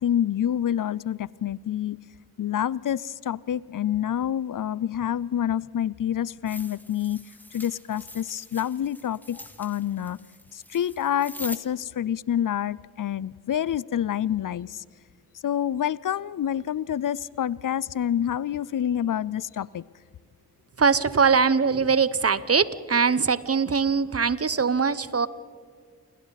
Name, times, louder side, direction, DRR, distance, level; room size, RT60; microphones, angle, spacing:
voice 1, 0.0-2.0 2.4-7.2 7.5-10.2 10.5-14.8 15.4-19.8, left 10 dB, 55° left, 22 dB, 0.6 m, -27 dB
sound 1, 6.5-11.6, left 1 dB, 5° left, 2.1 m, -43 dB
voice 2, 20.8-25.3, right 5 dB, 40° right, 17 dB, 1.0 m, -22 dB
28.5 x 24.0 x 4.1 m, 2.2 s
supercardioid pair, 40°, 38 cm